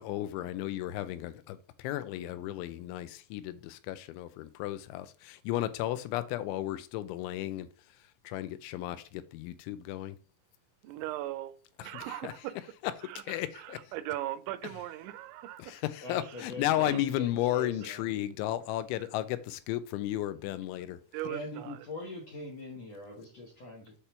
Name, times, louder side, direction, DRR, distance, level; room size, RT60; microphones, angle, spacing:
voice 1, 0.0-7.7 8.2-10.2 11.8-12.3 12.8-13.9 15.6-21.0, left 14 dB, 85° left, 3.0 m, -34 dB
voice 2, 10.8-11.5 11.8-12.5 13.1-13.2 13.6-15.7 16.8-17.0 21.1-21.9, right 14 dB, 85° right, 3.0 m, -38 dB
voice 3, 16.0-18.3 21.2-23.9, left 2 dB, 65° left, 1.6 m, -42 dB
8.3 x 4.4 x 5.6 m
omnidirectional pair, 5.4 m